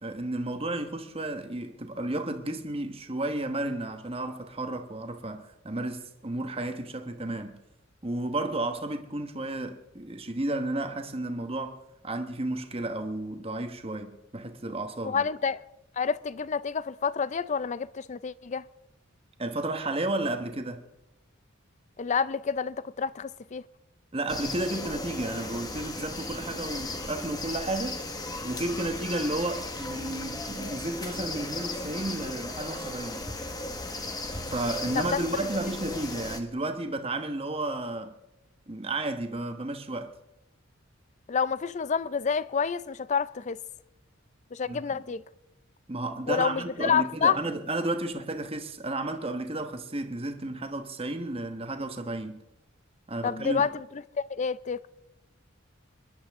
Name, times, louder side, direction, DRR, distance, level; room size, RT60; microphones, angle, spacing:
voice 1, 0.0-7.6 8.0-15.2 19.4-20.8 24.1-28.1 28.4-33.6 34.5-38.1 38.7-40.1 44.7-45.0 45.9-52.4 53.1-53.6, right 2 dB, 30° right, 1.2 m, -32 dB
voice 2, 15.0-15.6 16.0-18.7 22.0-23.6 34.9-35.2 41.3-43.6 44.5-45.2 46.3-47.4 53.2-53.8 54.2-54.9, left 6 dB, 35° left, 0.4 m, -28 dB
sound 1, 24.3-36.4, left 2 dB, 20° left, 1.3 m, -36 dB
26.0 x 11.5 x 3.6 m
head